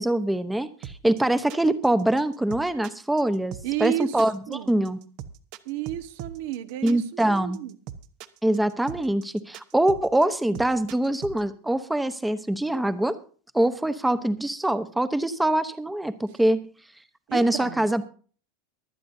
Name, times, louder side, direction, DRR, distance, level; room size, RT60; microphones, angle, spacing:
voice 1, 0.0-5.0 6.8-7.6 8.4-13.1 13.5-16.6 17.3-18.0, right 1 dB, 5° right, 0.9 m, -24 dB
sound 1, 0.8-11.4, right 9 dB, 50° right, 1.0 m, -40 dB
voice 2, 3.6-4.7 5.6-7.8 17.3-17.8, right 13 dB, 65° right, 1.2 m, -32 dB
23.5 x 9.2 x 2.7 m
supercardioid pair, 145°, 0 cm